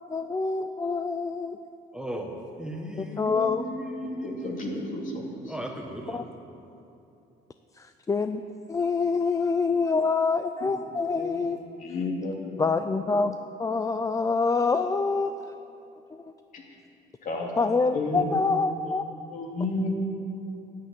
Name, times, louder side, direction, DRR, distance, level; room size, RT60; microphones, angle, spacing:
voice 1, 0.1-1.6 3.0-3.6 6.1-6.2 7.7-8.4 8.7-11.6 12.6-13.3 13.6-15.3 16.1-16.2 17.6-19.0, left 4 dB, 20° left, 0.4 m, -26 dB
voice 2, 1.9-6.3, right 1 dB, 5° right, 1.5 m, -36 dB
voice 3, 4.2-5.5 11.1-11.5 11.8-12.3 16.5-16.6 17.2-17.5 17.9-18.2 19.3-19.9, left 2 dB, 50° left, 2.6 m, -32 dB
10.5 x 10.0 x 8.3 m
cardioid pair, 110°, 17 cm